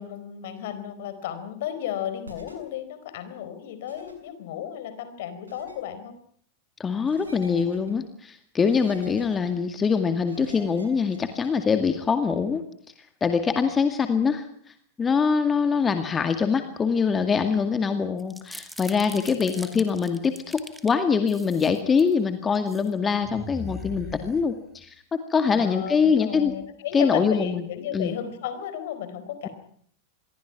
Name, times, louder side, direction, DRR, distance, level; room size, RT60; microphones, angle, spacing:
voice 1, 0.0-6.1 19.2-19.9 23.9-24.2 25.5-29.5, left 10 dB, 55° left, 11 dB, 4.3 m, -34 dB
sound 1, 2.2-2.5 3.9-4.1 5.5-5.8 7.1-7.9 8.7-9.5 10.3-11.5, right 2 dB, 75° right, 7.4 m, -46 dB
voice 2, 6.8-12.6 13.2-26.5 26.9-27.6 27.9-28.1, left 5 dB, 20° left, 7 dB, 2.1 m, -24 dB
sound 2, 18.2-20.9 21.3-22.1 22.5-22.9 23.2-24.8, equal, ahead, 2.6 m, -41 dB
27.0 x 22.5 x 6.0 m, 0.62 s
figure-of-eight pair, 90°, 0 cm